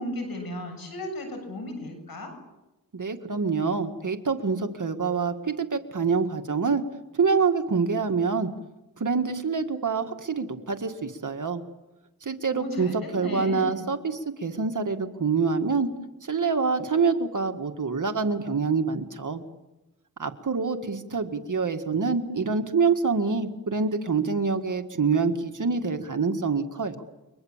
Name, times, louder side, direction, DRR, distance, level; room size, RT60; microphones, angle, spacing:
voice 1, 0.0-2.3 12.5-13.9, left 1 dB, 80° left, 5 dB, 7.4 m, -35 dB
voice 2, 2.9-6.8 7.1-8.5 9.0-11.6 12.2-15.9 16.2-19.4 20.2-27.0, right 5 dB, 55° right, 6 dB, 1.9 m, -26 dB
29.5 x 23.5 x 7.4 m, 1.0 s
cardioid pair, 60°, 36 cm